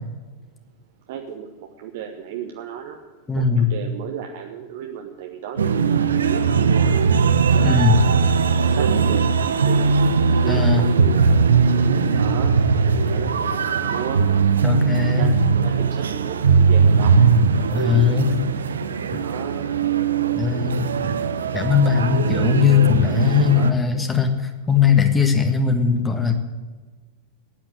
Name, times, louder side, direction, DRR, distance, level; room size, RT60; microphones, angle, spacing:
voice 1, 1.1-3.0 3.3-8.1 8.7-9.9 10.4-11.4 11.7-14.2 14.9-17.1 19.2-19.7, right 9 dB, 55° right, 3 dB, 1.2 m, -34 dB
voice 2, 3.3-3.7 7.6-8.0 10.5-10.8 14.6-15.3 17.7-18.4 19.1-19.2 20.3-20.9 21.5-26.4, left 6 dB, 15° left, 6 dB, 1.6 m, -19 dB
sound 1, 5.6-23.7, right 5 dB, 70° right, 0.8 m, -19 dB
15.0 x 9.8 x 7.6 m, 1.4 s
figure-of-eight pair, 90°, 0 cm